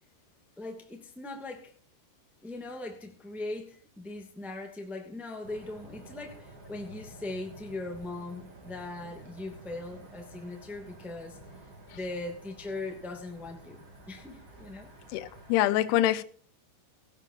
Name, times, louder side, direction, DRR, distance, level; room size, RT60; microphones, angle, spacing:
voice 1, 0.6-1.7 2.4-11.4 11.9-14.9, left 2 dB, ahead, 0.6 m, -40 dB
sound 1, 5.4-15.6, right 1 dB, 30° right, 3.0 m, -51 dB
voice 2, 15.1-16.2, left 13 dB, 75° left, 2.7 m, -25 dB
17.5 x 16.5 x 2.8 m
omnidirectional pair, 5.3 m